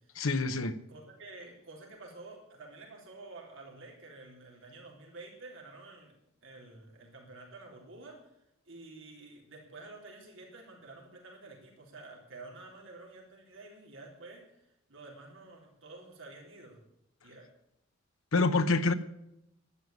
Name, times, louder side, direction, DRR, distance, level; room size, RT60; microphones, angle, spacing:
voice 1, 0.2-0.8 18.3-18.9, left 3 dB, 75° left, 10 dB, 0.9 m, -26 dB
voice 2, 0.9-6.1 6.4-16.8 17.2-17.5, right 2 dB, 65° right, -1 dB, 3.7 m, -50 dB
12.5 x 9.6 x 9.2 m, 0.80 s
head